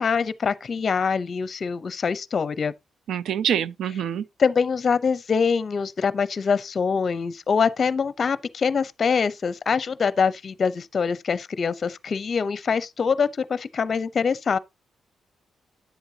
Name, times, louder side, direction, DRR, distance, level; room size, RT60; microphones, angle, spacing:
voice 1, 0.0-2.7 4.4-14.6, left 5 dB, 45° left, 0.6 m, -24 dB
voice 2, 3.1-4.2, right 9 dB, 80° right, 0.5 m, -25 dB
10.0 x 8.0 x 2.8 m
cardioid pair, 105°, 0 cm